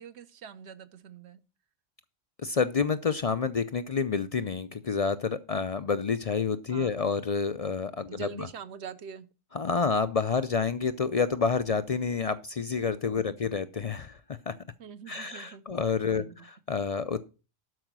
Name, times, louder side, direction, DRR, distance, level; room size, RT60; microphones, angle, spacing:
voice 1, 0.0-1.4 6.7-6.9 8.1-9.3 13.0-13.3 14.8-15.8 16.1-16.5, right 7 dB, 60° right, 1.1 m, -44 dB
voice 2, 2.4-8.5 9.5-14.2 14.5-14.6 15.1-17.2, left 5 dB, 55° left, 0.4 m, -29 dB
12.5 x 4.9 x 6.0 m
omnidirectional pair, 1.3 m